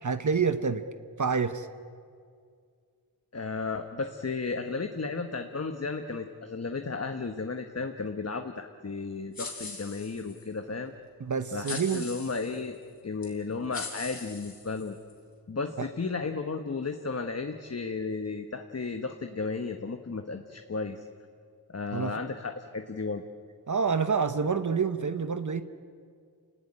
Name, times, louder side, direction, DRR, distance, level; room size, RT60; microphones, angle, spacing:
voice 1, 0.0-0.8 1.2-1.7 11.2-12.0 15.8-15.9 21.9-22.1 23.7-25.6, right 5 dB, 50° right, 10 dB, 1.0 m, -27 dB
voice 2, 3.3-10.9 11.5-12.8 13.0-15.0 15.5-21.0 21.7-23.2, left 4 dB, 40° left, 6 dB, 1.3 m, -34 dB
sound 1, 9.3-10.5 11.6-12.6 13.2-13.3 13.7-15.1, left 3 dB, 65° left, 6.0 m, -41 dB
28.0 x 18.5 x 9.9 m, 2.2 s
wide cardioid pair, 85°, 37 cm